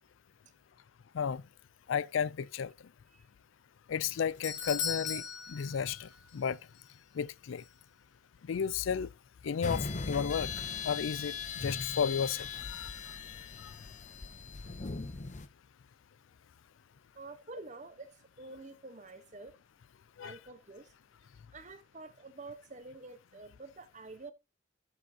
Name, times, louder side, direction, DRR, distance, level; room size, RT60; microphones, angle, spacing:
voice 1, 1.9-2.7 3.9-5.2 5.5-6.6 7.1-7.6 8.5-9.1 9.4-10.5 10.8-12.9 13.6-13.7 20.2-20.4, left 7 dB, 75° left, 0.4 m, -33 dB
Doorbell, 4.0-6.5 6.7-6.8 7.6-7.7, left 7 dB, 60° left, 1.5 m, -38 dB
sound 1, 9.6-15.5, left 5 dB, 35° left, 0.6 m, -39 dB
voice 2, 17.1-18.1 18.4-19.6 20.2-20.9 21.5-24.3, right 3 dB, 35° right, 1.0 m, -48 dB
12.5 x 6.9 x 2.8 m
head